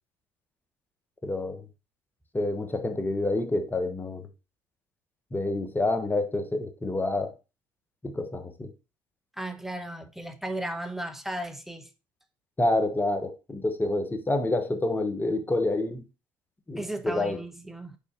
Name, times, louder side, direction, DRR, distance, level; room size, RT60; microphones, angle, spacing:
voice 1, 1.2-1.7 2.3-4.3 5.3-7.3 8.0-8.7 12.6-16.0 16.7-17.4, left 2 dB, 20° left, 1.2 m, -28 dB
voice 2, 9.4-11.9 16.8-18.0, right 1 dB, 5° right, 1.0 m, -35 dB
5.5 x 4.1 x 4.3 m
supercardioid pair, 80°, 10 cm